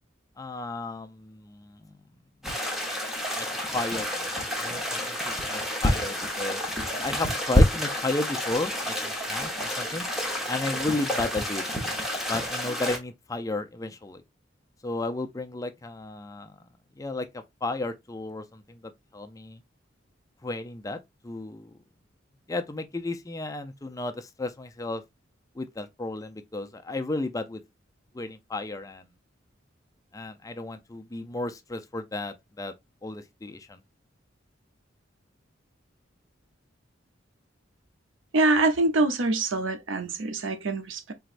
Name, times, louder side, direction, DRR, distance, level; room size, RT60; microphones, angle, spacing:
voice 1, 0.4-2.0 3.3-3.5 3.7-6.6 7.0-10.1 10.5-11.6 12.3-14.2 14.8-16.6 17.0-18.8 19.1-19.6 20.4-21.0 21.2-21.7 22.5-25.0 25.5-27.6 28.1-29.1 30.1-32.7 33.0-33.8, left 2 dB, 15° left, 0.4 m, -33 dB
sound 1, 2.4-13.0, equal, ahead, 1.0 m, -28 dB
voice 2, 38.3-41.1, right 2 dB, 85° right, 0.7 m, -24 dB
4.6 x 3.0 x 2.5 m
head